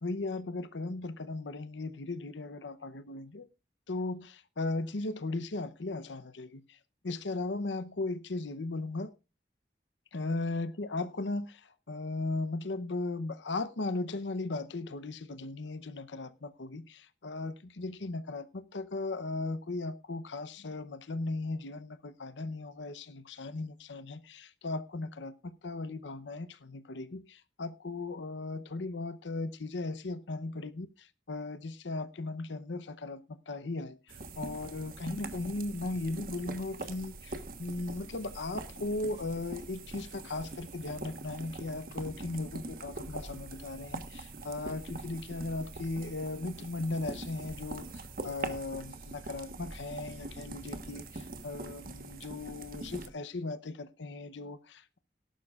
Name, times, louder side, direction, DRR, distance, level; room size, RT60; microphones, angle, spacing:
voice 1, 0.0-3.5 3.9-6.8 7.0-9.1 10.1-55.0, left 2 dB, 90° left, 0.7 m, -37 dB
sound 1, 34.1-53.1, right 2 dB, 50° right, 1.2 m, -43 dB
18.0 x 11.5 x 2.4 m
head